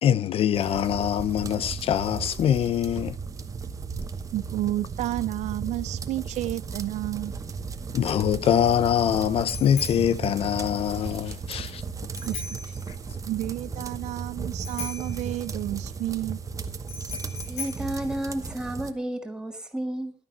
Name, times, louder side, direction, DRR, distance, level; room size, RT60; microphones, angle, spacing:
voice 1, 0.0-3.2 7.9-11.8, left 10 dB, 55° left, 0.6 m, -24 dB
sound 1, 0.5-18.9, right 5 dB, 30° right, 1.0 m, -35 dB
voice 2, 4.3-7.3 12.2-12.7 13.1-16.4 17.0-17.1, right 15 dB, 80° right, 0.5 m, -31 dB
Bicycle bell, 7.8-19.0, left 5 dB, 70° left, 7.1 m, -41 dB
voice 3, 17.5-20.1, right 1 dB, 5° right, 2.0 m, -31 dB
11.5 x 10.5 x 5.5 m
cardioid pair, 135°, 12 cm